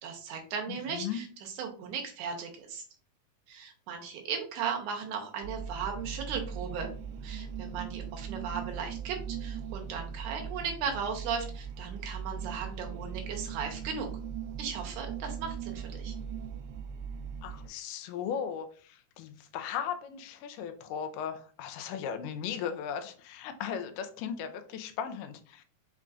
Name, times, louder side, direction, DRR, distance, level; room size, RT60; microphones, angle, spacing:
voice 1, 0.0-2.8 3.5-6.9 7.2-14.1 14.6-16.1, right 6 dB, 75° right, 3 dB, 2.1 m, -37 dB
voice 2, 0.7-1.2 17.4-25.6, left 8 dB, 80° left, 8 dB, 2.1 m, -37 dB
sound 1, 5.4-17.7, right 7 dB, 90° right, 2.2 m, -39 dB
5.5 x 3.7 x 2.4 m, 0.42 s
omnidirectional pair, 3.9 m